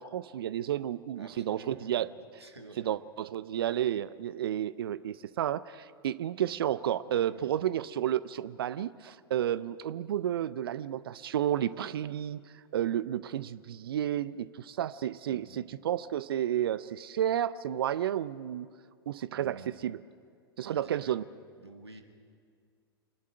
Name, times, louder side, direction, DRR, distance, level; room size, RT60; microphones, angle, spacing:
voice 1, 0.0-2.4 2.8-12.4 12.7-18.7 19.1-20.0 20.6-21.2, right 11 dB, 65° right, 17 dB, 0.5 m, -31 dB
voice 2, 1.2-2.1 2.4-3.0 6.5-6.6 7.1-7.5 15.3-15.7 19.3-19.7 20.6-21.2 21.6-22.0, right 3 dB, 85° right, 4 dB, 1.9 m, -50 dB
24.5 x 11.0 x 10.0 m, 2.2 s
figure-of-eight pair, 95°, 13 cm